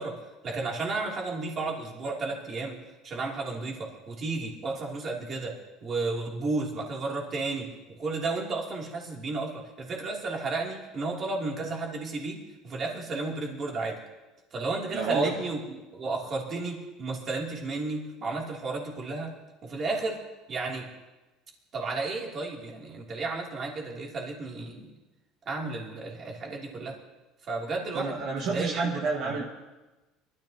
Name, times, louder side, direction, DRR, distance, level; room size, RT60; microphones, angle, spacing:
voice 1, 0.0-2.8 3.0-7.7 8.0-12.4 12.6-14.0 14.5-19.3 19.6-20.2 20.5-20.9 21.7-24.9 25.5-27.0 27.5-28.9 29.2-29.3, right 3 dB, 35° right, -1 dB, 3.0 m, -33 dB
voice 2, 14.9-15.3 27.9-29.4, right 4 dB, 55° right, -2 dB, 1.8 m, -29 dB
24.0 x 13.5 x 2.9 m, 1.1 s
cardioid pair, 145°, 0 cm